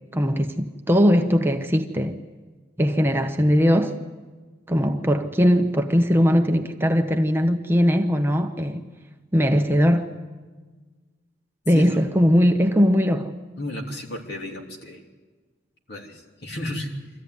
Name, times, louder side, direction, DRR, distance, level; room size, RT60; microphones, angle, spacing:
voice 1, 0.1-2.2 2.8-3.9 4.7-8.8 9.3-10.1 11.7-13.3, equal, 10° right, 0.9 m, -20 dB
voice 2, 13.6-15.0 15.9-16.9, left 1 dB, 60° left, 3.2 m, -33 dB
24.0 x 14.5 x 9.5 m
head